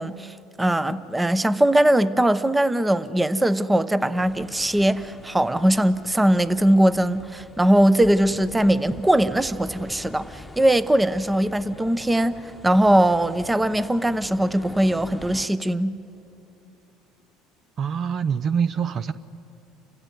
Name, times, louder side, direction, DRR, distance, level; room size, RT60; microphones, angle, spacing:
voice 1, 0.0-16.0, right 1 dB, 10° right, 15 dB, 0.9 m, -20 dB
sound 1, 4.1-15.5, left 2 dB, 10° left, 1.3 m, -44 dB
voice 2, 17.8-19.1, right 7 dB, 45° right, 15 dB, 0.7 m, -24 dB
29.0 x 16.0 x 9.6 m, 2.8 s
hypercardioid pair, 80°, 0 cm